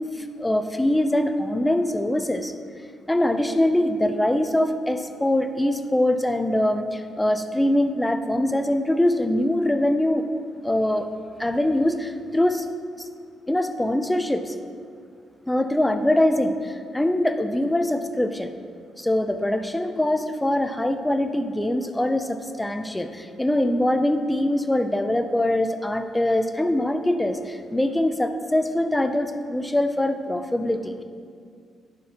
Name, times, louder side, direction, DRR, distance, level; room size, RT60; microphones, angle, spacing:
voice 1, 0.2-2.5 3.1-10.2 10.6-11.1 11.4-12.7 13.5-14.5 15.5-18.5 19.0-31.0, left 1 dB, 5° left, 7 dB, 0.3 m, -23 dB
11.0 x 5.8 x 2.8 m, 2.2 s
cardioid pair, 165°, 0 cm